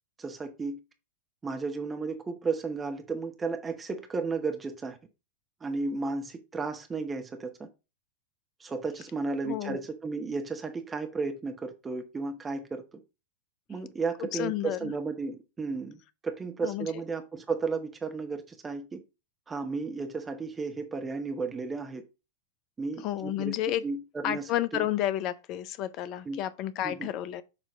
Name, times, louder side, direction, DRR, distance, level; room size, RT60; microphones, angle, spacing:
voice 1, 0.2-0.8 1.4-5.0 5.6-7.7 8.6-12.8 13.7-19.0 19.5-22.0 22.8-23.5 23.8-24.9 26.3-26.4 26.8-27.1, right 4 dB, 15° right, 0.9 m, -33 dB
voice 2, 9.4-9.8 14.2-14.9 16.6-16.9 23.0-23.8 24.2-27.4, left 13 dB, 40° left, 0.6 m, -31 dB
7.0 x 2.9 x 5.3 m
figure-of-eight pair, 90°, 0 cm